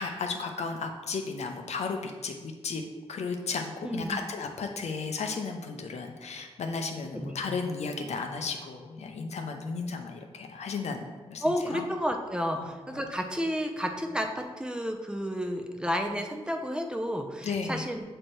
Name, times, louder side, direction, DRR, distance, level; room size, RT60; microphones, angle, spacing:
voice 1, 0.0-2.8 3.1-11.9 12.5-13.1 17.4-17.9, left 4 dB, 80° left, 4 dB, 0.7 m, -34 dB
voice 2, 3.8-4.2 7.1-7.4 11.4-18.0, equal, 10° right, 3 dB, 0.6 m, -31 dB
7.5 x 3.3 x 4.4 m, 1.3 s
wide cardioid pair, 110°, 11 cm